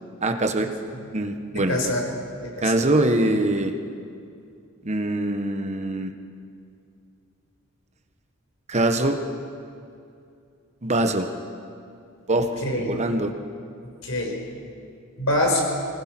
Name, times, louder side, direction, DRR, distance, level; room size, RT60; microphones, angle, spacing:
voice 1, 0.2-0.7 1.1-1.8 2.6-3.7 4.8-6.1 8.7-9.2 10.8-11.3 12.3-12.5 12.7-13.3, right 1 dB, 35° right, 6 dB, 1.2 m, -23 dB
voice 2, 1.5-2.0 2.4-2.8 12.6-13.0 14.0-14.4 15.2-15.6, left 1 dB, 75° left, 0 dB, 5.1 m, -25 dB
25.5 x 19.5 x 6.0 m, 2.5 s
head